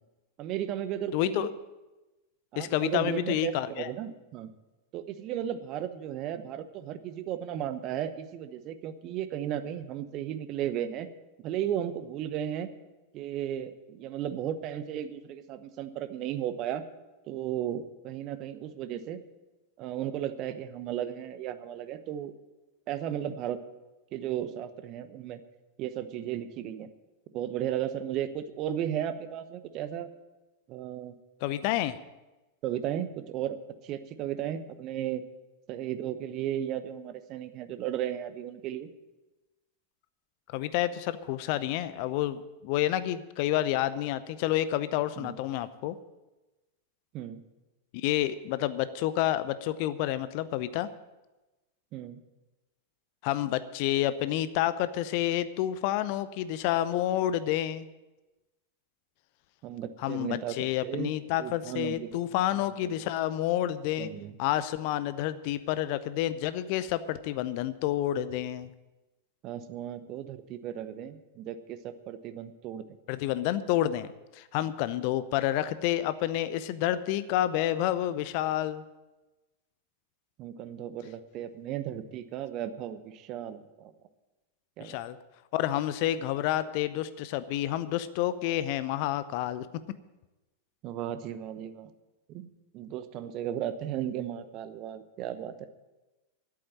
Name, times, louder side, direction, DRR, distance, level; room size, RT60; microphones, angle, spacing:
voice 1, 0.4-1.5 2.5-4.5 4.9-11.1 11.4-12.7 13.1-16.8 17.3-19.2 19.8-22.3 22.9-23.6 24.1-25.4 25.8-26.9 27.3-30.1 30.7-31.1 32.6-33.6 33.8-35.2 35.7-38.9 45.2-45.4 47.1-47.4 51.9-52.2 59.6-61.1 61.4-62.1 62.8-62.9 64.0-64.3 69.4-72.8 80.4-83.9 84.8-85.0 90.8-91.9 92.3-95.7, right 10 dB, 40° right, 11 dB, 0.9 m, -35 dB
voice 2, 1.1-1.5 2.6-3.9 31.4-32.0 40.5-46.0 47.9-50.9 53.2-57.9 60.0-64.1 64.4-68.7 73.1-78.8 84.8-85.2 85.5-89.7, left 13 dB, 45° left, 15 dB, 0.6 m, -29 dB
11.0 x 8.6 x 8.8 m, 1.1 s
figure-of-eight pair, 90°, 0 cm